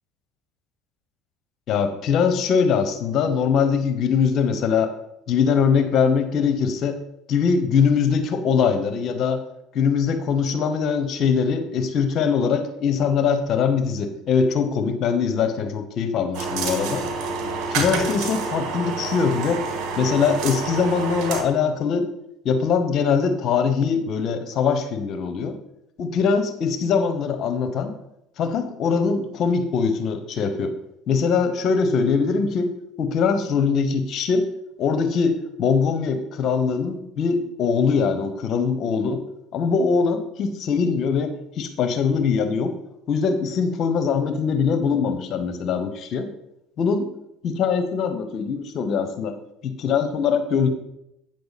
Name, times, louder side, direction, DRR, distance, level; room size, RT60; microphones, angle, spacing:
voice 1, 1.7-4.9 5.3-7.0 7.3-9.4 9.7-17.0 17.7-19.6 20.0-22.1 22.4-25.5 26.0-27.9 28.4-30.8 31.1-32.7 33.0-34.5 34.8-39.2 39.5-42.7 43.1-46.3 46.8-47.1 47.4-49.3 49.6-50.7, left 6 dB, 55° left, 9 dB, 1.0 m, -22 dB
sound 1, 16.3-21.4, right 4 dB, 65° right, 1.9 m, -28 dB
8.9 x 6.7 x 4.1 m, 0.82 s
supercardioid pair, 100°, 0 cm